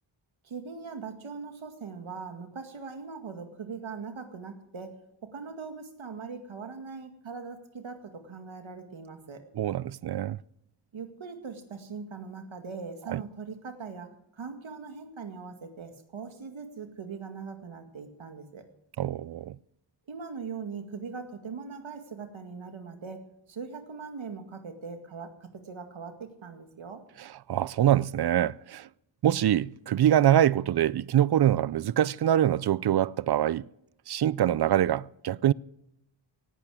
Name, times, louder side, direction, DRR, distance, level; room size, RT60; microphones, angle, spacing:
voice 1, 0.4-4.9 5.2-9.4 10.9-18.6 20.1-23.2 23.5-27.0, right 5 dB, 75° right, 2.2 m, -41 dB
voice 2, 9.6-10.4 13.1-13.2 19.0-19.6 27.5-28.9 29.2-33.6 34.1-35.5, right 11 dB, 55° right, 0.5 m, -24 dB
18.0 x 11.5 x 4.9 m
wide cardioid pair, 90°, 47 cm